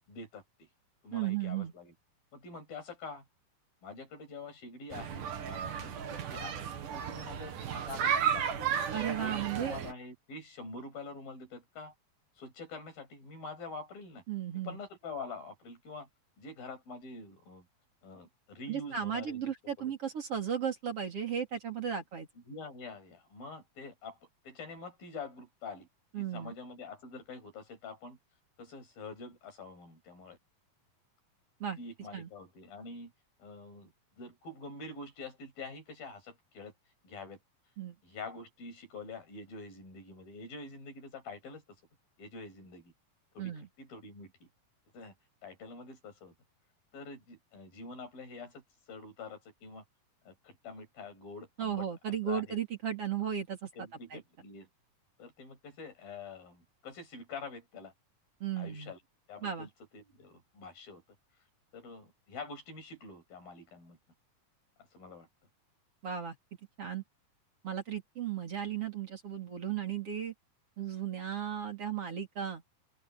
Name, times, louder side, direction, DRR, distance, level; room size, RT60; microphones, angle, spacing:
voice 1, 0.1-0.7 1.0-1.9 2.3-3.2 3.8-6.7 7.0-8.8 9.2-11.9 12.4-14.2 14.6-16.1 16.4-17.7 18.0-19.5 19.8-19.9 22.5-24.2 24.4-25.9 26.2-28.2 28.6-30.4 31.8-33.1 33.4-33.9 34.2-36.7 37.0-37.4 38.0-41.8 42.2-42.9 43.3-43.5 43.8-44.5 44.9-45.1 45.4-46.3 46.9-48.6 48.9-49.8 50.3-52.6 53.7-54.7 55.2-57.9 58.6-59.0 59.3-61.0 61.7-64.0 64.9-65.3, left 3 dB, 90° left, 9.2 m, -46 dB
voice 2, 1.1-1.7 8.9-9.8 14.3-14.8 18.7-22.3 26.1-26.5 31.6-31.8 32.1-32.3 37.8-38.0 43.4-43.7 51.6-54.2 58.4-58.9 59.4-59.7 66.0-66.4 66.8-67.0 67.6-70.3 70.8-72.8, right 8 dB, 40° right, 4.2 m, -35 dB
sound 1, 4.9-9.9, right 8 dB, 65° right, 3.4 m, -34 dB
open air
omnidirectional pair, 4.0 m